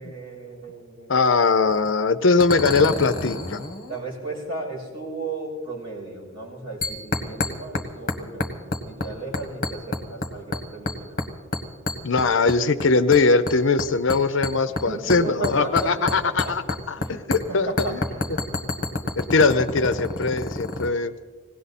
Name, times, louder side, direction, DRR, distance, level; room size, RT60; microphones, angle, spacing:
voice 1, 0.0-1.1 3.9-11.2 14.9-15.9 16.2-16.5 17.0-18.4, right 2 dB, 25° right, -6 dB, 5.9 m, -35 dB
voice 2, 1.1-3.6 12.0-18.0 19.2-21.1, left 4 dB, 60° left, 12 dB, 0.6 m, -21 dB
sound 1, 1.7-1.9 2.4-4.0 6.8-9.1 9.3-10.3 10.5-11.3 11.5-12.8 13.1-17.1 17.3-17.4 17.8-20.9, left 2 dB, 40° left, 1.5 m, -28 dB
20.0 x 17.0 x 4.2 m, 1.5 s
head